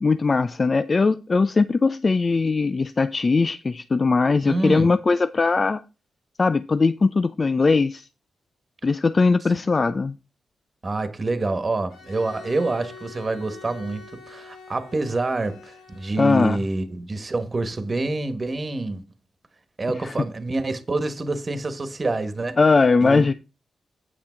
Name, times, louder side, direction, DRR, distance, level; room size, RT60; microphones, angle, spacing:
voice 1, 0.0-5.8 6.4-8.1 8.8-10.1 16.2-16.6 20.0-20.1 22.6-23.3, left 4 dB, 40° left, 0.4 m, -20 dB
voice 2, 4.5-4.9 10.8-19.0 19.8-22.6 23.0-23.3, right 2 dB, 40° right, 1.5 m, -27 dB
Bowed string instrument, 11.9-16.9, left 5 dB, 85° left, 2.0 m, -45 dB
8.4 x 6.1 x 4.5 m
cardioid pair, 55°, 0 cm